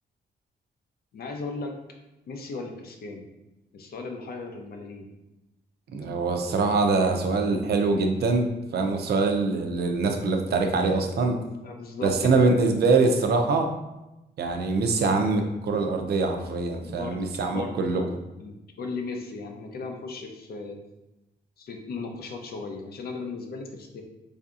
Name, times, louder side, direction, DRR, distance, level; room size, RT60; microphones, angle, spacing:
voice 1, 1.1-1.7 2.3-3.3 3.7-5.1 11.4-12.5 16.8-18.1 18.4-20.8 21.6-24.0, left 4 dB, 55° left, 3 dB, 0.6 m, -37 dB
voice 2, 5.9-8.5 8.7-11.4 12.0-13.7 14.4-18.0, right 3 dB, 65° right, 5 dB, 0.5 m, -23 dB
4.8 x 2.7 x 2.4 m, 0.97 s
wide cardioid pair, 150°, 18 cm